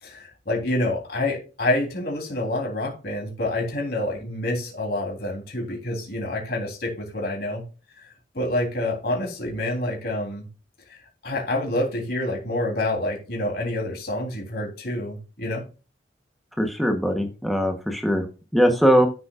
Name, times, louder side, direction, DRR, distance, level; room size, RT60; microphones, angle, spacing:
voice 1, 0.0-7.6 8.3-10.5 11.2-15.6, left 1 dB, 55° left, 0 dB, 3.6 m, -27 dB
voice 2, 16.6-18.2 18.5-19.1, equal, ahead, 3 dB, 1.1 m, -20 dB
14.5 x 6.9 x 2.5 m, 0.34 s
head